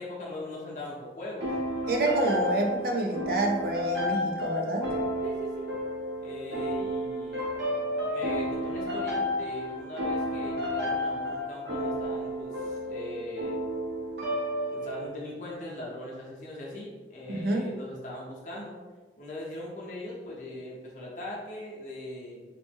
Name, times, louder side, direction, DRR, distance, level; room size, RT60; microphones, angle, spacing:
voice 1, 0.0-1.5 5.2-5.7 6.2-7.5 8.1-13.6 14.7-18.8 19.2-22.4, left 1 dB, 45° left, -4 dB, 0.7 m, -40 dB
sound 1, 1.4-15.1, left 1 dB, 80° right, 0.8 m, -32 dB
voice 2, 1.9-4.9 17.3-17.7, right 2 dB, 55° right, 1 dB, 0.4 m, -27 dB
3.2 x 2.0 x 3.4 m, 1.3 s
head